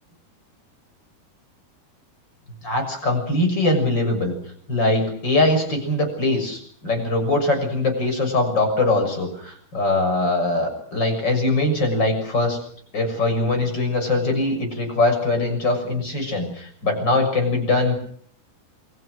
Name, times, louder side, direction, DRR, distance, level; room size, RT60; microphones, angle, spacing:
voice 1, 2.6-4.3 4.7-12.6 12.9-18.0, left 2 dB, 25° left, 6 dB, 7.0 m, -22 dB
28.0 x 24.5 x 6.3 m, 0.62 s
omnidirectional pair, 4.8 m